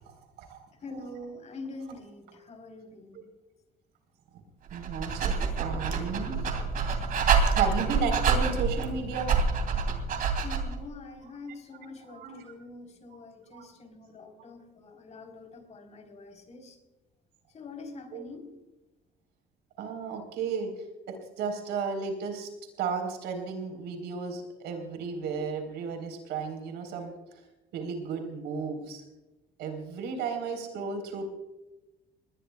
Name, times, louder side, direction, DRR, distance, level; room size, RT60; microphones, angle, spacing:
voice 1, 0.0-0.7 4.7-6.4 7.0-7.1 7.5-9.3 12.1-12.4 13.5-13.7 18.1-18.2 19.8-20.7 21.1-22.5 22.8-27.4 27.7-29.0 29.6-31.2, right 5 dB, 85° right, 5 dB, 4.0 m, -34 dB
voice 2, 0.7-3.3 10.4-16.8 17.5-18.5, left 2 dB, 40° left, 4 dB, 3.9 m, -45 dB
Dog, 4.7-10.8, right 5 dB, 55° right, 2.9 m, -27 dB
20.5 x 20.5 x 2.3 m, 1.0 s
cardioid pair, 110°, 17 cm